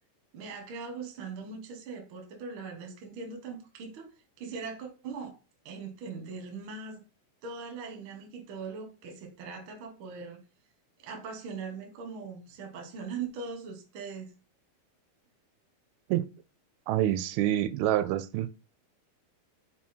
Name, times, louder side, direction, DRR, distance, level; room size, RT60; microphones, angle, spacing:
voice 1, 0.3-4.1 4.4-5.4 5.6-7.0 7.4-10.4 11.0-14.3, right 5 dB, 60° right, 1.3 m, -40 dB
voice 2, 16.9-18.5, right 12 dB, 85° right, 2.4 m, -27 dB
6.0 x 3.7 x 4.3 m
omnidirectional pair, 4.4 m